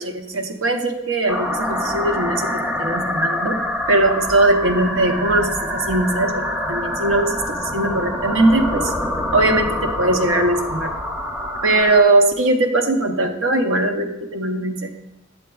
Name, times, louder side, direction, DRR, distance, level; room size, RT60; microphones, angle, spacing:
voice 1, 0.0-3.6 3.9-8.9 9.3-10.9 11.6-15.1, right 2 dB, 85° right, 6 dB, 0.7 m, -20 dB
sound 1, 1.3-12.0, left 1 dB, 10° right, 0.5 m, -25 dB
7.9 x 7.5 x 2.3 m, 0.95 s
head